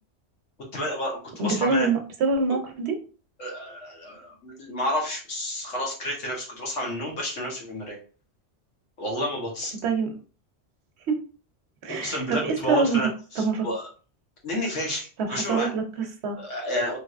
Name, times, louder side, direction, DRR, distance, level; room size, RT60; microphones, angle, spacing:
voice 1, 0.7-1.9 3.4-8.0 9.0-9.7 11.9-13.1 13.3-13.9 14.4-15.7 16.4-17.0, left 1 dB, 90° left, -2 dB, 1.5 m, -30 dB
voice 2, 1.4-2.9 9.8-10.1 11.1-11.2 11.8-13.1 13.4-13.7 15.2-16.4, right 4 dB, 70° right, 4 dB, 0.9 m, -25 dB
3.4 x 2.8 x 2.4 m, 0.37 s
omnidirectional pair, 1.2 m